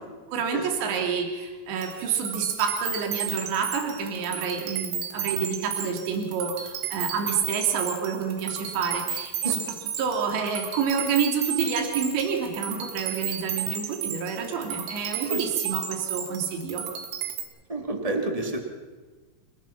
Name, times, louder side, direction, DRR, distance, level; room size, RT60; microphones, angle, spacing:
voice 1, 0.3-16.9, right 6 dB, 60° right, 3 dB, 4.9 m, -28 dB
sound 1, 1.8-17.4, right 8 dB, 80° right, 4.9 m, -33 dB
voice 2, 17.7-18.7, right 2 dB, 20° right, 2 dB, 0.9 m, -29 dB
29.0 x 19.0 x 6.0 m, 1.3 s
omnidirectional pair, 5.9 m